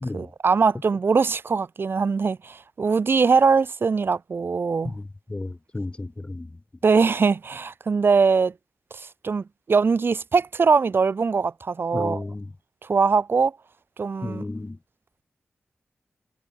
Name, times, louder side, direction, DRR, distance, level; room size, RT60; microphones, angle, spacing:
voice 1, 0.1-5.0 6.8-8.5 8.9-12.3 12.8-13.5 14.0-14.4, right 5 dB, 60° right, 1.3 m, -22 dB
voice 2, 5.3-6.5 11.9-12.5 14.2-14.8, left 2 dB, 25° left, 0.7 m, -32 dB
wide cardioid pair, 80°, 4 cm